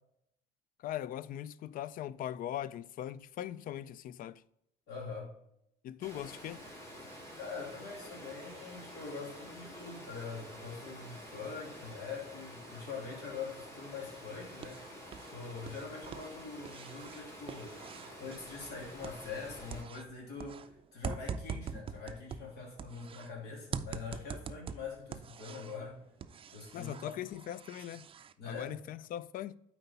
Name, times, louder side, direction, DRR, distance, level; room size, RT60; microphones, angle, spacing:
voice 1, 0.8-4.4 5.8-6.6 26.7-28.0 28.4-29.5, left 11 dB, 55° left, 0.4 m, -40 dB
voice 2, 4.9-5.3 7.4-14.8 15.3-17.8 18.2-26.0 26.5-27.2 28.4-28.8, left 4 dB, 75° left, 2.6 m, -44 dB
Water, 6.0-19.8, equal, 20° left, 3.0 m, -49 dB
sound 1, 14.2-15.3 15.6-19.4 19.7-23.3 23.7-25.8 26.2-28.3, right 6 dB, 35° right, 0.4 m, -44 dB
7.8 x 4.6 x 4.1 m
cardioid pair, 110°, 17 cm